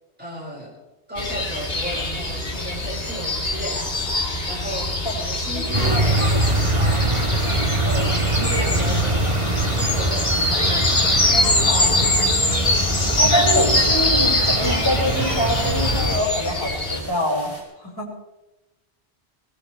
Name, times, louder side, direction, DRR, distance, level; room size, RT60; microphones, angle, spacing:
voice 1, 0.2-0.8 1.1-3.9 4.4-7.1 7.7-9.3 9.7-12.1 14.1-14.4, equal, 10° right, -3 dB, 5.3 m, -34 dB
sound 1, 1.2-17.0, left 2 dB, 60° left, 2.3 m, -23 dB
sound 2, 1.2-17.6, equal, 75° right, 6.3 m, -41 dB
voice 2, 5.5-6.0 8.8-9.0 11.7-12.3 13.2-18.2, equal, 20° left, -4 dB, 5.4 m, -25 dB
sound 3, 5.7-16.2, right 1 dB, 30° right, 1.5 m, -23 dB
21.0 x 20.0 x 3.4 m, 0.97 s
omnidirectional pair, 1.1 m